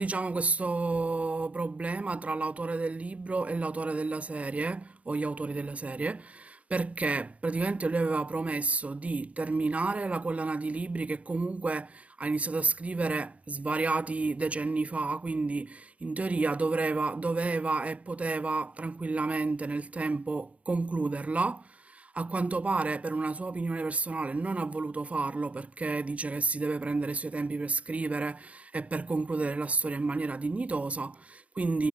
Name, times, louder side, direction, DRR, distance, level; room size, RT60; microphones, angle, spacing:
voice 1, 0.0-31.9, right 3 dB, 10° right, 3.6 m, -30 dB
hypercardioid pair, 110°, 15 cm